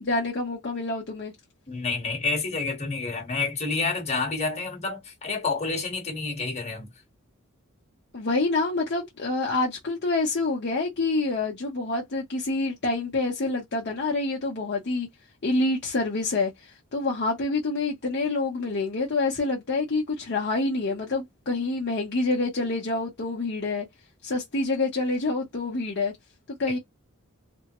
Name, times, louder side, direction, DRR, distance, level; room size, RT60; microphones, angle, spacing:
voice 1, 0.0-1.3 8.1-15.1 15.4-16.5 16.9-23.9 24.2-26.1 26.6-26.8, left 3 dB, 55° left, 0.8 m, -27 dB
voice 2, 1.7-6.9 26.7-26.8, left 4 dB, 30° left, 1.4 m, -29 dB
3.4 x 2.0 x 2.9 m
head